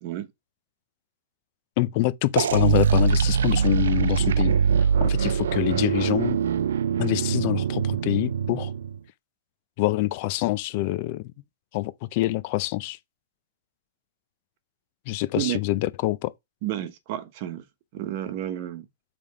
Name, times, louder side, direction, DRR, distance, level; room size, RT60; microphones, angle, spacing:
voice 1, 1.8-4.5 5.0-6.4 7.0-8.7 9.8-11.3 11.7-13.0 15.1-16.3, left 18 dB, 40° left, 0.5 m, -25 dB
sound 1, 2.4-9.0, right 7 dB, 75° right, 0.4 m, -23 dB
voice 2, 16.6-17.6 17.9-18.9, right 12 dB, 40° right, 1.0 m, -31 dB
7.5 x 3.5 x 4.9 m
hypercardioid pair, 160°, 0 cm